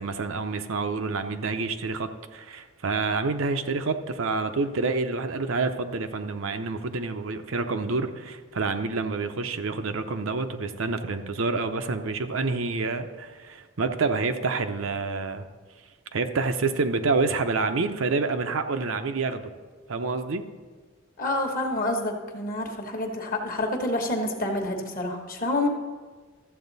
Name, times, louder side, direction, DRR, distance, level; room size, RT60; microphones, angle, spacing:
voice 1, 0.0-15.5 16.1-19.5 19.9-20.4, right 3 dB, 65° right, 8 dB, 0.6 m, -28 dB
voice 2, 21.2-25.7, left 2 dB, 40° left, 3 dB, 1.2 m, -28 dB
13.0 x 7.8 x 4.0 m, 1.4 s
head